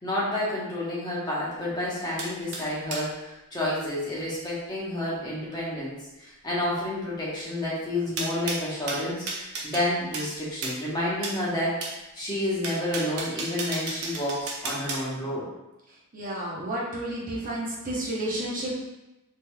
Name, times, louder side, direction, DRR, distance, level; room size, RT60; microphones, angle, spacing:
voice 1, 0.0-11.8 12.1-15.4, left 1 dB, 20° left, -7 dB, 0.9 m, -30 dB
sound 1, 2.2-3.1 8.2-9.9 10.1-10.3 10.6-10.8 11.2-11.4 11.8-12.0 12.6-15.0, right 3 dB, 70° right, 0.6 m, -33 dB
voice 2, 16.1-18.7, right 1 dB, 40° right, -5 dB, 0.8 m, -31 dB
3.5 x 3.0 x 2.2 m, 0.96 s
head